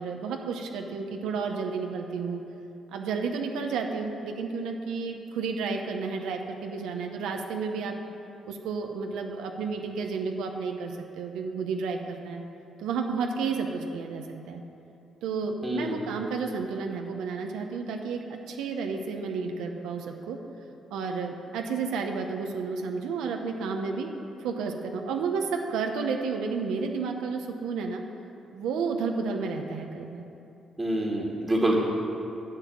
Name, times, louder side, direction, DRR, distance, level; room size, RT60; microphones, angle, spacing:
voice 1, 0.0-2.4 2.9-7.9 8.4-12.4 12.8-14.6 15.2-20.4 20.9-24.1 24.4-28.0 28.5-30.3, right 5 dB, 90° right, 3 dB, 0.9 m, -31 dB
voice 2, 15.6-16.1 30.8-31.7, right 1 dB, 15° right, -3 dB, 1.8 m, -27 dB
10.5 x 5.7 x 8.6 m, 2.9 s
cardioid pair, 90°, 0 cm